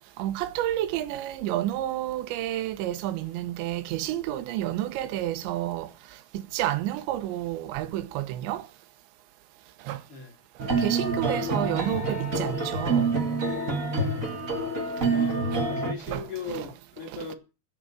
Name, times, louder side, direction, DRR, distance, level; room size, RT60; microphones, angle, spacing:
voice 1, 0.2-5.9 6.3-8.7 9.8-10.0 10.6-13.1 15.5-15.6 16.0-16.7 17.1-17.3, right 13 dB, 85° right, 3.3 m, -30 dB
sound 1, 10.6-15.9, right 3 dB, 35° right, 1.4 m, -27 dB
voice 2, 15.1-17.4, left 4 dB, 35° left, 3.2 m, -37 dB
15.0 x 7.6 x 8.9 m
omnidirectional pair, 5.0 m